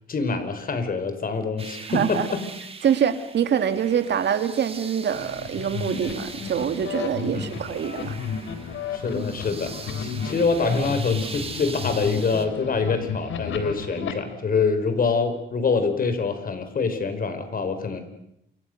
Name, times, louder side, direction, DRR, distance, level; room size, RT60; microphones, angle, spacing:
voice 1, 0.1-2.4 7.3-7.5 8.9-18.0, left 4 dB, 45° left, 9 dB, 5.0 m, -25 dB
sound 1, 1.6-12.5, right 4 dB, 30° right, 3.6 m, -41 dB
voice 2, 1.9-2.3 2.8-8.2, right 8 dB, 60° right, 9 dB, 2.5 m, -25 dB
sound 2, 5.1-14.1, left 6 dB, 75° left, 3.8 m, -32 dB
28.5 x 26.0 x 6.7 m, 0.80 s
cardioid pair, 90°, 20 cm